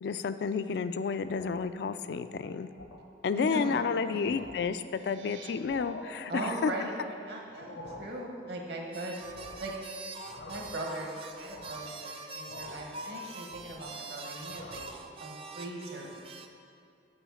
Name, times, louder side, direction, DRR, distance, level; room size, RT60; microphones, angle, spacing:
voice 1, 0.0-2.7 3.2-6.7, left 5 dB, 60° left, 11 dB, 0.3 m, -31 dB
sound 1, 1.3-1.7 2.2-2.4 2.8-3.0 3.6-3.7 4.0-4.7 5.5-6.1 7.5-8.2 9.2-9.8 10.1-10.9 11.3-11.9 12.5-12.9 13.3-14.0 14.3-15.0, left 1 dB, 85° left, 1.0 m, -48 dB
voice 2, 3.3-4.4 6.3-9.2 9.6-9.7 10.4-14.8 15.2-16.2, right 1 dB, 60° right, 0 dB, 1.3 m, -39 dB
sound 2, 4.7-5.5, right 7 dB, 85° right, 0.8 m, -52 dB
sound 3, 8.9-16.5, right 3 dB, 30° right, 0.4 m, -44 dB
7.0 x 5.5 x 7.1 m, 2.4 s
head